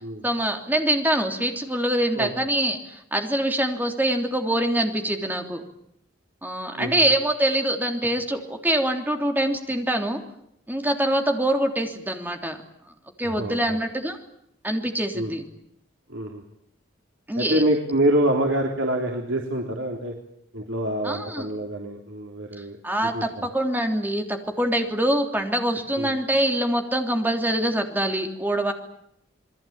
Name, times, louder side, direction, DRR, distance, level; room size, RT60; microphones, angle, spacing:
voice 1, 0.2-5.6 6.4-10.2 10.7-12.6 13.2-14.2 14.6-15.5 17.3-17.6 21.0-21.5 22.8-28.7, right 1 dB, 10° right, 4 dB, 3.3 m, -24 dB
voice 2, 6.7-7.0 13.2-13.8 15.1-15.3 16.1-16.4 17.3-20.1 20.5-22.8 23.0-23.5 26.0-26.1, right 1 dB, 75° right, 1 dB, 3.6 m, -26 dB
28.0 x 22.0 x 9.0 m, 0.74 s
head